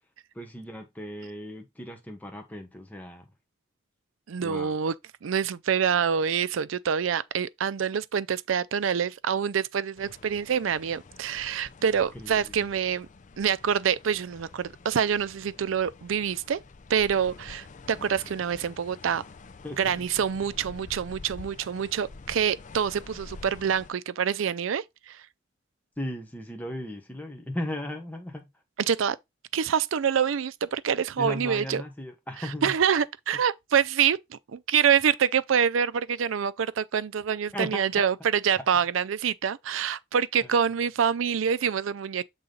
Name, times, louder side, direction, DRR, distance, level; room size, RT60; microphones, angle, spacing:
voice 1, 0.3-3.2 4.4-4.8 12.1-12.7 19.6-20.1 26.0-28.5 31.2-32.7 37.5-37.8 38.5-38.6 40.4-40.5, left 1 dB, 10° left, 1.1 m, -36 dB
voice 2, 4.3-4.9 5.2-13.1 13.4-16.6 16.9-19.2 19.8-25.2 28.9-29.2 29.5-31.8 32.6-42.2, right 7 dB, 80° right, 0.4 m, -26 dB
sound 1, 10.0-23.9, left 3 dB, 40° left, 0.5 m, -48 dB
7.1 x 3.8 x 3.9 m
head